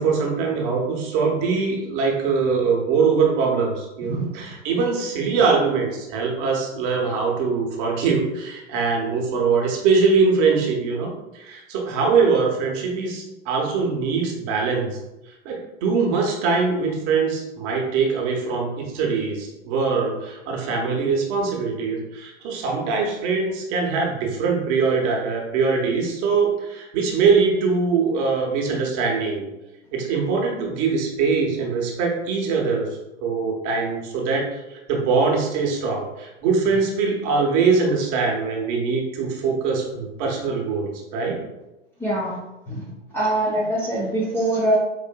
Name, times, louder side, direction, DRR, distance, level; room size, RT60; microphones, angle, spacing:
voice 1, 0.0-15.0 15.4-29.5 29.9-32.9 33.2-41.4, right 4 dB, 40° right, 0 dB, 0.8 m, -22 dB
voice 2, 42.0-42.4 42.7-42.8 43.1-44.8, right 1 dB, 5° left, -6 dB, 0.6 m, -23 dB
4.7 x 2.5 x 2.2 m, 0.98 s
hypercardioid pair, 105°, 36 cm